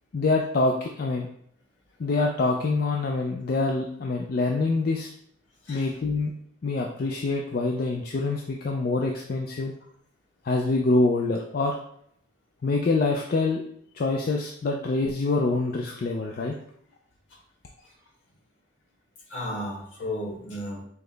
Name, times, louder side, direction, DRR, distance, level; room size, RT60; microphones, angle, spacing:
voice 1, 0.1-1.3 2.0-5.1 5.7-6.3 6.6-9.7 10.4-11.8 12.6-13.6 13.9-16.5, left 3 dB, 45° left, 0 dB, 0.3 m, -25 dB
voice 2, 19.3-20.8, left 1 dB, 70° left, -3 dB, 1.6 m, -33 dB
5.5 x 2.0 x 3.3 m, 0.67 s
head